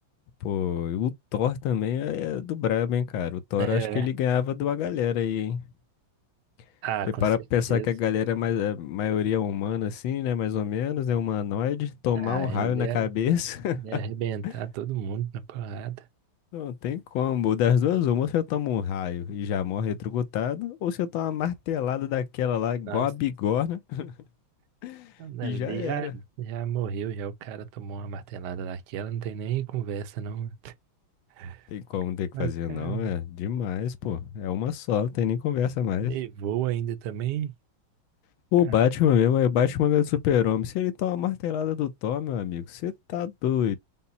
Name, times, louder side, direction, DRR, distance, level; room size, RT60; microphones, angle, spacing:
voice 1, 0.4-5.6 7.2-14.0 14.4-14.5 16.5-24.1 24.8-25.1 25.4-26.1 31.7-36.1 38.5-43.8, left 9 dB, 80° left, 1.4 m, -26 dB
voice 2, 3.6-4.1 6.8-7.3 7.7-7.9 12.2-13.1 13.8-16.0 22.9-23.1 25.2-26.1 26.4-30.7 31.4-31.6 32.3-33.1 36.0-37.5, right 9 dB, 65° right, 1.1 m, -32 dB
5.6 x 2.0 x 4.0 m
omnidirectional pair, 2.2 m